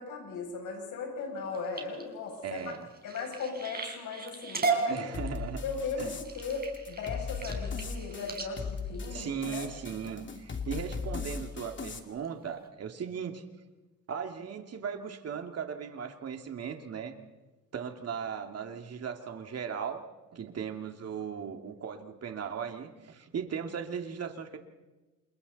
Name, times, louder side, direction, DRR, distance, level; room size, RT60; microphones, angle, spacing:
voice 1, 0.0-2.7 3.0-5.0 5.6-9.7, left 4 dB, 80° left, -1 dB, 7.8 m, -37 dB
sound 1, 1.4-10.1 10.6-11.0 11.4-11.8 12.2-12.3 12.6-12.7, right 3 dB, 30° right, 4.7 m, -36 dB
voice 2, 2.4-2.9 4.9-5.6 6.0-6.1 9.1-13.4 14.1-17.1 17.7-20.0 20.3-24.6, right 7 dB, 55° right, 4 dB, 2.6 m, -37 dB
sound 2, 5.1-12.0, left 5 dB, 40° left, 2.6 m, -38 dB
29.5 x 27.5 x 4.2 m, 1.2 s
cardioid pair, 90°, 30 cm